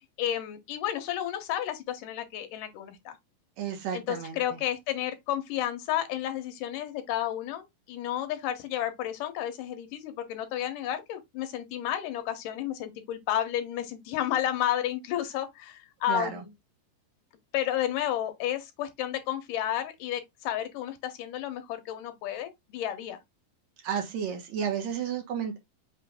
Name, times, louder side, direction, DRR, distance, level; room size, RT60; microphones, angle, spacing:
voice 1, 0.2-3.2 3.9-16.5 17.5-23.2, left 11 dB, 75° left, 2.2 m, -32 dB
voice 2, 3.6-4.6 16.1-16.4 23.8-25.6, right 8 dB, 65° right, 2.0 m, -32 dB
5.8 x 2.5 x 3.5 m
omnidirectional pair, 4.2 m